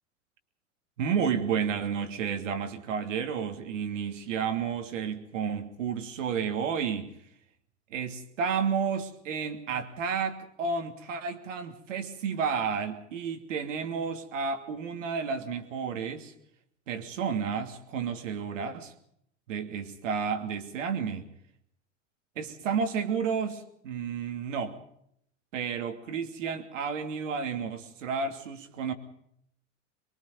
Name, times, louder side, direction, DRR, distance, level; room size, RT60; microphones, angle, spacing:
voice 1, 1.0-7.1 7.9-16.3 16.9-18.9 19.5-21.3 22.4-24.8 25.5-28.9, right 6 dB, 75° right, 7 dB, 3.0 m, -31 dB
23.5 x 23.5 x 5.3 m, 0.70 s
hypercardioid pair, 90°, 37 cm